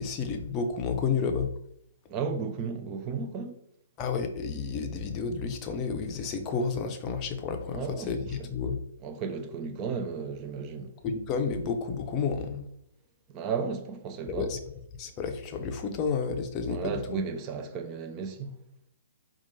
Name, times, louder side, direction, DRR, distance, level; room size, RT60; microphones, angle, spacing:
voice 1, 0.0-1.5 4.0-8.8 11.0-12.6 14.4-14.6 15.0-17.2, left 5 dB, 25° left, 0.6 m, -31 dB
voice 2, 2.1-3.6 7.7-8.5 9.0-10.9 13.3-14.5 16.7-18.6, right 5 dB, 30° right, 0.6 m, -34 dB
4.3 x 2.5 x 4.1 m
figure-of-eight pair, 125°, 0 cm